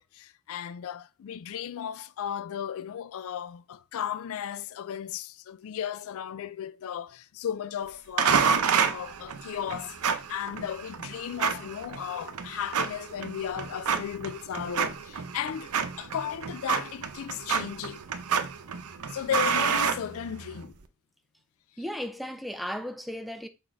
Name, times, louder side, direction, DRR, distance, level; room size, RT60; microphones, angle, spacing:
voice 1, 0.0-15.7 16.0-18.0 19.1-20.7, left 9 dB, 65° left, 0.4 m, -35 dB
sound 1, 8.2-20.7, right 6 dB, 75° right, 0.7 m, -29 dB
voice 2, 21.8-23.5, equal, ahead, 0.5 m, -35 dB
6.3 x 3.7 x 4.4 m
head